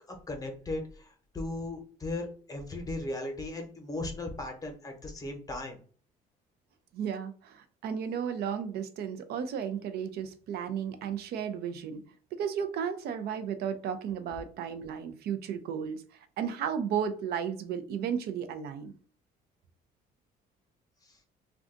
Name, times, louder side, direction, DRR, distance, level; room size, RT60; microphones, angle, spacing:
voice 1, 0.1-5.8 21.0-21.2, left 2 dB, 20° left, 3 dB, 0.8 m, -37 dB
voice 2, 6.9-12.0 12.3-18.9, right 8 dB, 70° right, 9 dB, 0.5 m, -34 dB
2.5 x 2.3 x 3.7 m, 0.43 s
cardioid pair, 110°, 17 cm